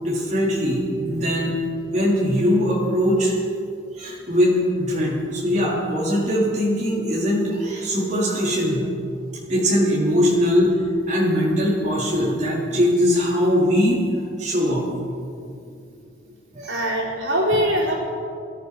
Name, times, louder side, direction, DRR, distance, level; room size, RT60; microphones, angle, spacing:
voice 1, 0.0-1.6 1.8-3.3 3.9-8.9 9.5-10.8 11.1-15.0 16.5-16.9, equal, 35° right, -6 dB, 4.0 m, -21 dB
voice 2, 16.7-17.9, equal, 90° right, -4 dB, 4.0 m, -22 dB
21.0 x 13.5 x 5.0 m, 2.5 s
head